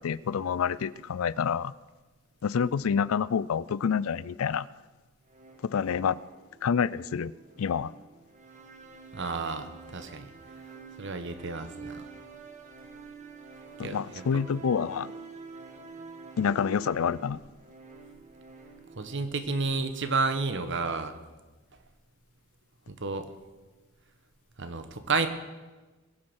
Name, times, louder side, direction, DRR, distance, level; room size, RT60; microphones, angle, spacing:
voice 1, 0.0-1.7 2.4-4.7 5.6-6.2 6.6-7.3 7.6-7.9 13.8-15.1 16.4-17.4, left 7 dB, 75° left, 20 dB, 0.4 m, -28 dB
sound 1, 5.3-19.2, right 4 dB, 35° right, 1.4 m, -47 dB
voice 2, 9.1-10.3 11.0-12.1 13.8-14.0 19.0-21.2 22.9-23.3 24.6-25.3, right 4 dB, 60° right, 9 dB, 1.2 m, -31 dB
21.5 x 7.4 x 6.3 m, 1.2 s
head